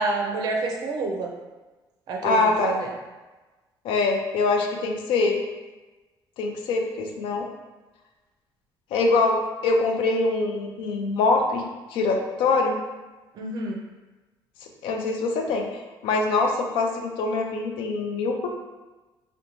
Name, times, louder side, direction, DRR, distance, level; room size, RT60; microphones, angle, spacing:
voice 1, 0.0-1.3 2.1-2.9 13.4-13.8, right 3 dB, 50° right, 1 dB, 0.4 m, -28 dB
voice 2, 2.2-2.8 3.8-5.4 6.4-7.5 8.9-11.6 11.9-12.8 14.8-18.5, left 3 dB, 85° left, 2 dB, 0.4 m, -24 dB
2.5 x 2.1 x 3.0 m, 1.2 s
cardioid pair, 165°, 9 cm